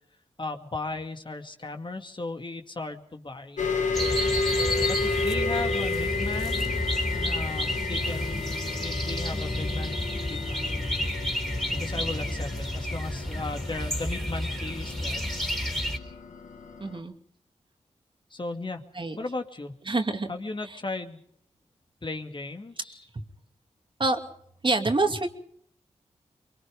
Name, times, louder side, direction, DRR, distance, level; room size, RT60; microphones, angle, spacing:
voice 1, 0.4-3.7 4.8-10.7 11.7-15.6 18.3-18.8 19.2-19.7 20.3-21.2 22.0-23.1, left 3 dB, 40° left, 5 dB, 2.3 m, -36 dB
sound 1, 3.6-17.0, left 4 dB, 80° left, 2.1 m, -32 dB
sound 2, 3.9-16.0, left 1 dB, 5° left, 3.6 m, -30 dB
voice 2, 16.8-17.1 19.0-19.2 19.9-20.3 24.0-24.2 24.6-25.3, right 2 dB, 40° right, 5 dB, 2.6 m, -25 dB
23.5 x 22.0 x 5.2 m, 0.65 s
cardioid pair, 40°, 13 cm